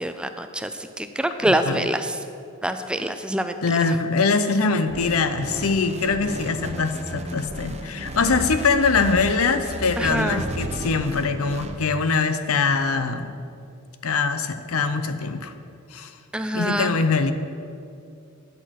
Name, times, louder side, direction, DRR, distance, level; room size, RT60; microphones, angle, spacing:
voice 1, 0.0-2.2 2.6-3.5 10.0-10.4 16.3-17.0, right 1 dB, 5° right, 8 dB, 0.3 m, -25 dB
voice 2, 1.4-1.9 3.6-13.4 14.0-15.5 15.9-16.1 16.5-17.3, left 4 dB, 85° left, 10 dB, 0.6 m, -23 dB
sound 1, 4.9-11.8, right 1 dB, 30° right, 0.8 m, -33 dB
10.5 x 6.5 x 5.8 m, 2.5 s
head